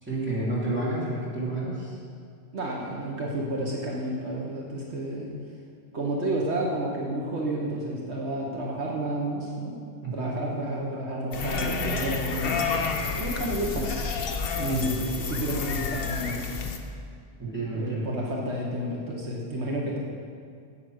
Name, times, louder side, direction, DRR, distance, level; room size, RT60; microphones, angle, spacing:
voice 1, 0.0-2.0 10.0-10.3 14.7-15.1 17.4-18.1, right 2 dB, 10° right, -8 dB, 3.1 m, -30 dB
voice 2, 2.5-5.3 5.9-9.7 10.1-12.6 13.1-14.0 14.6-16.5 17.7-20.0, right 1 dB, 70° right, -2 dB, 1.5 m, -30 dB
sound 1, 11.3-16.8, left 4 dB, 60° left, 1.0 m, -30 dB
9.5 x 8.2 x 6.3 m, 2.2 s
omnidirectional pair, 1.2 m